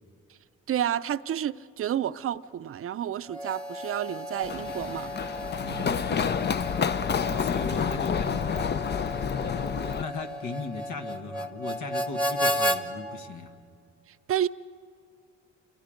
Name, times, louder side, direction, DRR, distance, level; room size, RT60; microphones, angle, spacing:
voice 1, 0.7-5.1 14.3-14.5, right 10 dB, 45° right, 0.6 m, -30 dB
Harmonica, 3.3-12.8, equal, 5° left, 1.2 m, -33 dB
Run, 4.4-10.0, left 7 dB, 35° left, 0.5 m, -29 dB
voice 2, 5.6-6.5 7.2-8.7 9.5-13.6, left 3 dB, 75° left, 1.8 m, -37 dB
27.5 x 23.0 x 5.2 m
cardioid pair, 90°, 30 cm